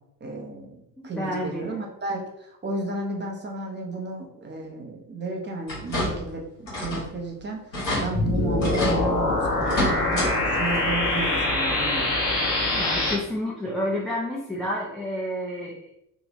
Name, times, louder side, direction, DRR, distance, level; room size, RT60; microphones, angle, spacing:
voice 1, 0.2-7.6 8.0-12.1, right 3 dB, 20° right, 0 dB, 0.8 m, -33 dB
voice 2, 1.0-1.8 12.7-15.8, left 1 dB, ahead, -5 dB, 0.5 m, -30 dB
sound 1, 5.7-6.3 6.7-7.1 7.4-7.5 7.7-8.0 8.6-9.0 9.6-10.3 10.7-10.8 12.2-12.3 12.8-12.9, left 1 dB, 85° left, 1.2 m, -28 dB
sound 2, 8.1-13.1, left 2 dB, 65° left, 1.1 m, -24 dB
3.8 x 2.5 x 3.0 m, 0.81 s
figure-of-eight pair, 50°, 50 cm